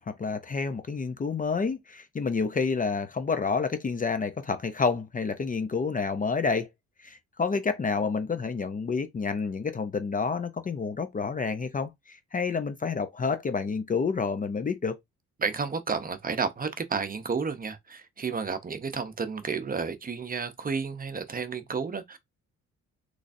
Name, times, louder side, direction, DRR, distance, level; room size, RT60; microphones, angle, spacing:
voice 1, 0.0-6.7 7.0-15.0, left 5 dB, 30° left, 0.5 m, -29 dB
voice 2, 15.4-22.2, right 5 dB, 30° right, 0.7 m, -31 dB
3.8 x 3.2 x 2.6 m
cardioid pair, 90°, 30 cm